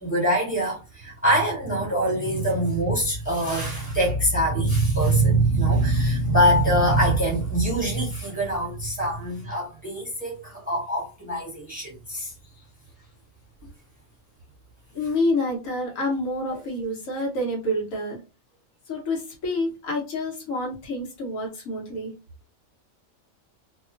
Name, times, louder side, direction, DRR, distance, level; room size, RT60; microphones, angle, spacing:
voice 1, 0.0-12.3, right 1 dB, 5° right, 1.1 m, -23 dB
voice 2, 14.9-18.2 18.9-22.2, left 1 dB, 75° left, 1.4 m, -28 dB
2.9 x 2.3 x 2.5 m
omnidirectional pair, 1.4 m